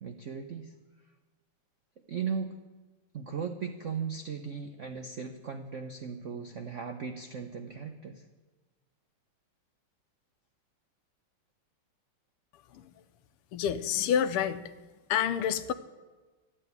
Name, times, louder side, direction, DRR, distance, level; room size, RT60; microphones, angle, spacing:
voice 1, 0.0-0.7 2.1-2.6 3.1-8.2, right 6 dB, 75° right, 6 dB, 0.7 m, -37 dB
voice 2, 13.5-14.6 15.1-15.7, left 9 dB, 90° left, 12 dB, 1.7 m, -28 dB
13.0 x 9.0 x 9.4 m, 1.2 s
omnidirectional pair, 2.4 m